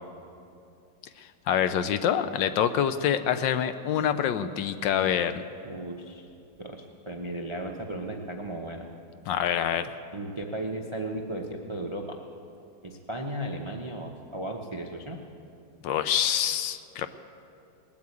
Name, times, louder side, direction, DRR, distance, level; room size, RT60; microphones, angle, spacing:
voice 1, 1.2-5.4 9.3-9.9 15.8-17.1, left 9 dB, 75° left, 11 dB, 1.3 m, -26 dB
voice 2, 5.6-6.3 6.6-8.8 10.1-12.2 12.8-15.2, right 1 dB, 50° right, 2 dB, 0.3 m, -35 dB
19.5 x 8.5 x 8.4 m, 2.5 s
omnidirectional pair, 2.2 m